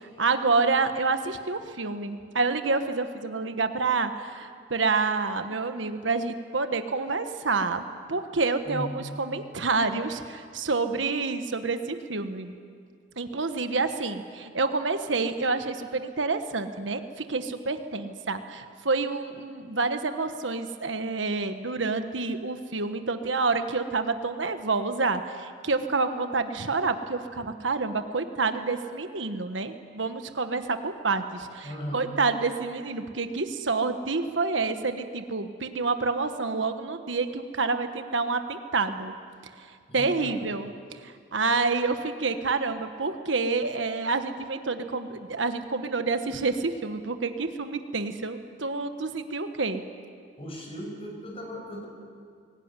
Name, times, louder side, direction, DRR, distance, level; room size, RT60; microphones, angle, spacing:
voice 1, 0.0-12.5 13.2-39.1 39.9-40.7 41.0-49.8, right 4 dB, 85° right, 8 dB, 1.4 m, -28 dB
voice 2, 8.7-9.0 31.6-32.1 39.9-40.4 50.4-51.9, equal, 30° left, 1 dB, 6.0 m, -37 dB
23.0 x 18.0 x 9.8 m, 2.2 s
head